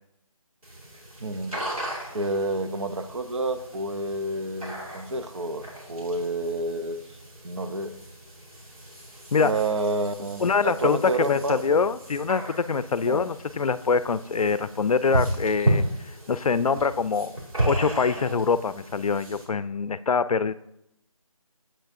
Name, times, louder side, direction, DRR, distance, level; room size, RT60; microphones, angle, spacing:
sound 1, 0.6-19.4, right 1 dB, 75° right, 2.5 m, -34 dB
voice 1, 1.2-1.5 2.1-7.0 7.4-7.9 9.4-11.6 13.1-13.3, right 2 dB, 55° right, 8 dB, 0.7 m, -29 dB
voice 2, 10.4-15.8 16.3-17.3 17.7-20.5, left 5 dB, 80° left, 15 dB, 0.4 m, -24 dB
7.6 x 6.6 x 2.6 m, 0.80 s
figure-of-eight pair, 165°, 18 cm